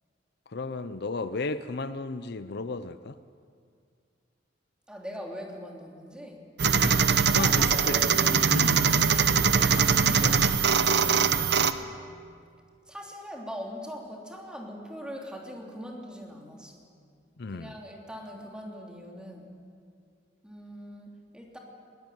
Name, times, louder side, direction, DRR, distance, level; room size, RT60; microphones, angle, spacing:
voice 1, 0.5-3.2 6.7-9.0 9.5-11.2 17.4-17.7, left 3 dB, 60° left, 13 dB, 0.6 m, -35 dB
voice 2, 4.9-6.4 7.3-8.4 9.6-10.0 12.9-16.8 17.5-19.6 20.4-21.6, equal, 5° right, 0 dB, 3.2 m, -41 dB
sound 1, 6.6-11.7, right 6 dB, 60° right, 0.9 m, -22 dB
21.0 x 18.0 x 9.3 m, 2.2 s
head